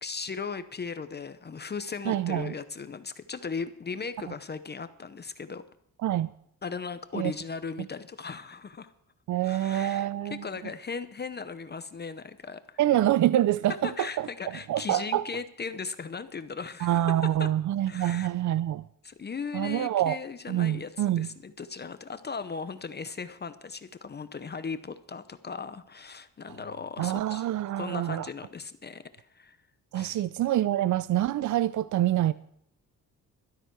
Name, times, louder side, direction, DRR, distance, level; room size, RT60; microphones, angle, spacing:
voice 1, 0.0-5.6 6.6-8.9 9.4-12.8 13.8-17.1 17.4-17.5 17.9-18.3 19.0-27.5 27.8-29.6 29.9-30.2, left 5 dB, 30° left, 0.7 m, -37 dB
voice 2, 2.1-2.5 4.3-4.4 6.0-6.3 7.1-7.3 9.3-10.5 12.8-15.3 16.8-18.8 19.5-20.2 20.5-21.3 26.5-26.6 27.0-28.3 29.9-32.3, right 13 dB, 60° right, 0.5 m, -26 dB
13.0 x 12.5 x 4.7 m
cardioid pair, 100°, 34 cm